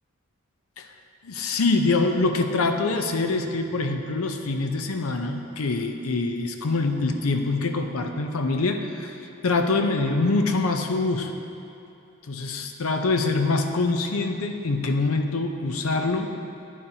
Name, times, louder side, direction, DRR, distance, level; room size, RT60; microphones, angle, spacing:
voice 1, 1.2-9.1 9.4-11.4 12.3-16.3, left 3 dB, 90° left, 5 dB, 0.6 m, -24 dB
10.0 x 8.7 x 2.8 m, 2.8 s
head